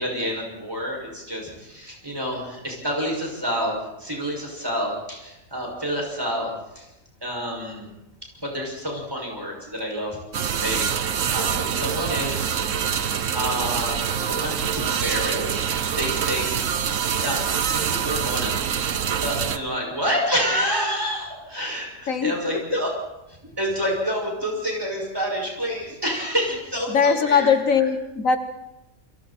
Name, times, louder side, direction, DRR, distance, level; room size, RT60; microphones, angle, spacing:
voice 1, 0.0-3.7 4.0-6.8 7.2-7.9 8.4-12.7 13.0-16.8 17.2-17.4 17.7-18.6 19.2-22.9 23.6-27.5, equal, 15° right, 6.5 m, -28 dB
sound 1, 10.3-19.6, right 8 dB, 70° right, 1.3 m, -25 dB
voice 2, 22.1-22.8 26.9-28.4, left 6 dB, 80° left, 1.7 m, -21 dB
29.0 x 23.5 x 4.4 m
omnidirectional pair, 1.4 m